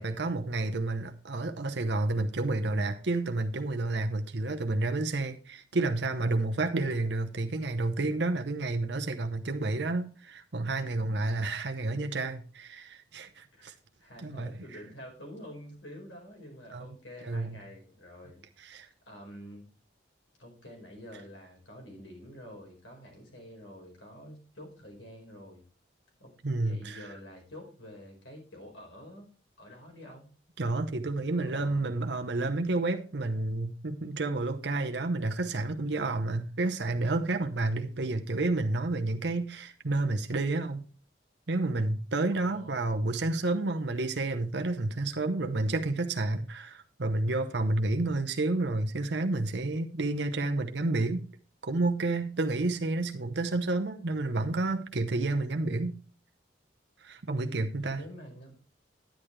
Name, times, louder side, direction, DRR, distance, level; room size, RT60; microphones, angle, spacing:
voice 1, 0.0-13.7 14.2-14.5 16.7-16.9 17.2-17.6 18.6-18.9 26.4-27.1 30.6-40.8 41.5-51.2 51.6-56.0 57.0-58.0, right 2 dB, 65° right, 0.8 m, -30 dB
voice 2, 13.5-18.4 18.7-19.7 20.4-25.6 26.2-29.3 29.6-30.3 31.3-31.9 42.3-42.9 57.4-58.5, equal, 85° left, 4.8 m, -48 dB
10.5 x 10.0 x 3.3 m
head